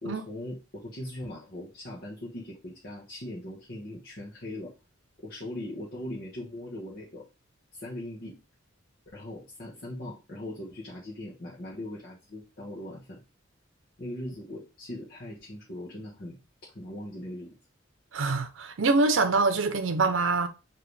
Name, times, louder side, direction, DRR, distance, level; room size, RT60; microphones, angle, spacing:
voice 1, 0.0-4.7 5.2-7.2 7.7-8.4 9.1-13.2 14.0-17.5, left 1 dB, 50° left, 1.2 m, -40 dB
voice 2, 18.1-20.5, right 3 dB, 75° right, 0.7 m, -24 dB
5.0 x 3.1 x 3.2 m
head